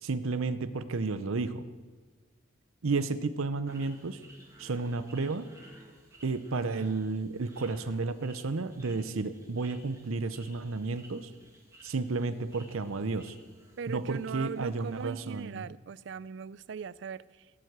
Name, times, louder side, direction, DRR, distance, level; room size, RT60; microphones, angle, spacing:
voice 1, 0.0-1.6 2.8-4.2 4.6-5.5 6.2-11.3 11.8-13.4 13.9-15.7, right 3 dB, 80° right, 12 dB, 0.7 m, -32 dB
sound 1, 3.7-15.4, right 1 dB, 15° right, 1.9 m, -57 dB
voice 2, 13.8-17.5, right 6 dB, 55° right, 19 dB, 0.3 m, -39 dB
17.0 x 7.7 x 8.1 m, 1.4 s
head